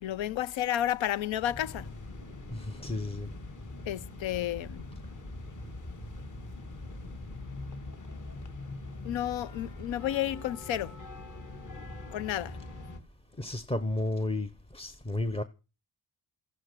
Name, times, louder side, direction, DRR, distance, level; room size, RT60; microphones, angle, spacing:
voice 1, 0.0-1.9 3.9-4.9 9.0-11.0 12.1-12.6, left 12 dB, 90° left, 0.7 m, -31 dB
sound 1, 1.3-13.0, left 2 dB, 40° left, 2.0 m, -43 dB
voice 2, 2.5-3.3 13.4-15.4, left 2 dB, 15° left, 0.6 m, -32 dB
14.0 x 11.5 x 5.9 m
wide cardioid pair, 135°, 45 cm